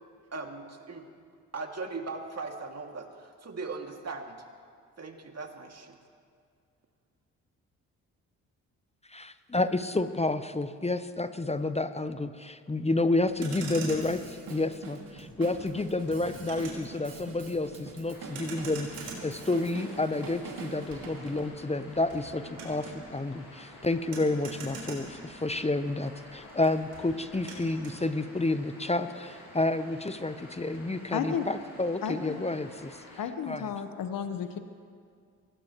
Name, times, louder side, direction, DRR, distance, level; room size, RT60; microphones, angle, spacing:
voice 1, 0.3-1.1 1.5-4.4 5.0-6.0, right 3 dB, 40° right, 3 dB, 2.4 m, -39 dB
voice 2, 9.1-14.2 14.5-33.0 33.5-33.6, left 2 dB, 15° left, 11 dB, 0.9 m, -30 dB
Motor vehicle (road), 13.3-25.8 26.1-28.0, right 3 dB, 75° right, 4.6 m, -44 dB
Drum kit, 14.0-21.5, right 4 dB, 60° right, 2.6 m, -45 dB
sound 1, 18.1-33.2, left 1 dB, 90° left, 5.6 m, -50 dB
voice 3, 31.1-31.5 32.0-32.4 33.2-34.6, left 7 dB, 55° left, 8 dB, 1.2 m, -32 dB
24.0 x 19.5 x 3.1 m, 2.1 s
hypercardioid pair, 40°, 39 cm